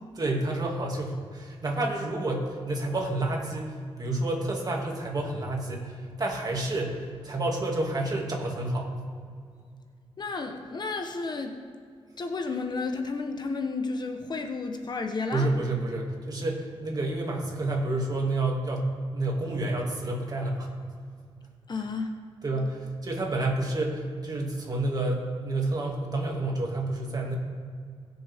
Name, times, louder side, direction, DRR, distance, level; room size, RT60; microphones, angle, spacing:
voice 1, 0.2-8.9 15.3-20.7 22.4-27.4, right 2 dB, 40° right, 0 dB, 2.3 m, -29 dB
voice 2, 10.2-11.6 12.2-15.5 21.7-22.1, left 4 dB, 45° left, 5 dB, 1.0 m, -32 dB
20.5 x 6.8 x 3.6 m, 2.1 s
cardioid pair, 105°, 11 cm